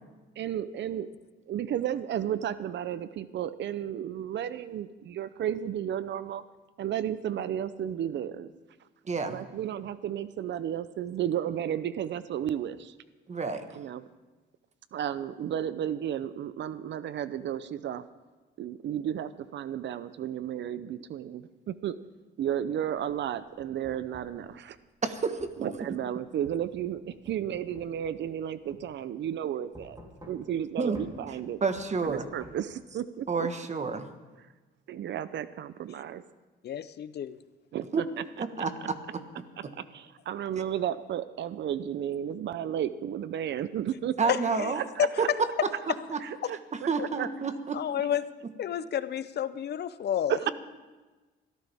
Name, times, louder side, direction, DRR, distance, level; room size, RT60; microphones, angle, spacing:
voice 1, 0.4-1.1 1.5-6.4 6.8-8.5 9.3-12.9 13.7-14.0 14.9-18.0 18.6-22.0 22.4-24.8 25.6-30.0 30.3-31.6 32.0-33.5 34.9-36.2 37.7-38.2 38.8-38.9 39.6-44.2 44.7-45.3 46.2-47.3 50.3-50.5, right 10 dB, 65° right, 14 dB, 0.6 m, -33 dB
voice 2, 9.1-9.4 13.3-13.6 25.0-25.5 30.8-31.0 31.6-32.3 33.3-34.1 37.9-38.0 38.4-39.2 44.2-44.8 45.2-45.7 46.1-46.2 46.7-47.8, right 4 dB, 35° right, 8 dB, 1.4 m, -29 dB
sound 1, 22.9-24.4 25.4-25.6 26.4-28.4 28.7-28.8 29.7-30.6 30.9-31.1 31.8-32.5, equal, 20° right, 3.5 m, -50 dB
voice 3, 36.6-37.4 44.3-44.7 45.0-45.1 46.4-46.5 47.0-47.1 47.7-48.2 48.6-50.3, left 9 dB, 55° left, 14 dB, 0.6 m, -30 dB
22.0 x 13.5 x 3.5 m, 1.2 s
cardioid pair, 90°, 20 cm